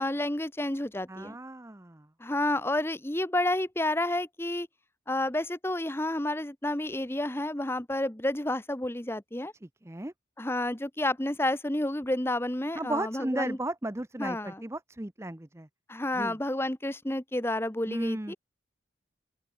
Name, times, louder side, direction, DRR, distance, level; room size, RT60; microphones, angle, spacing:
voice 1, 0.0-1.4 2.2-4.7 5.1-9.5 10.4-13.6 14.2-14.6 15.9-18.4, left 1 dB, 15° left, 1.0 m, -30 dB
voice 2, 1.1-2.1 9.8-10.1 12.8-15.7 16.1-16.4 17.9-18.3, right 1 dB, 15° right, 0.8 m, -35 dB
open air
head